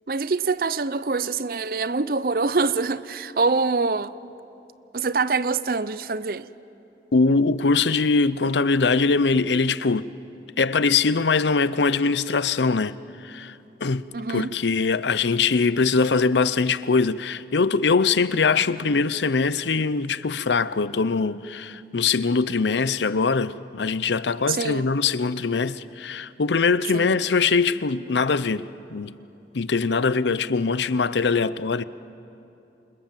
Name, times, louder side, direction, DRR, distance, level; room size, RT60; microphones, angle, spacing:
voice 1, 0.1-4.1 4.9-6.5 14.1-14.5 24.5-24.9 26.9-27.2, right 4 dB, 55° right, 0.6 m, -25 dB
voice 2, 7.1-10.1 10.6-13.0 13.2-29.2 29.5-31.8, left 4 dB, 85° left, 0.7 m, -22 dB
28.5 x 26.5 x 7.5 m
head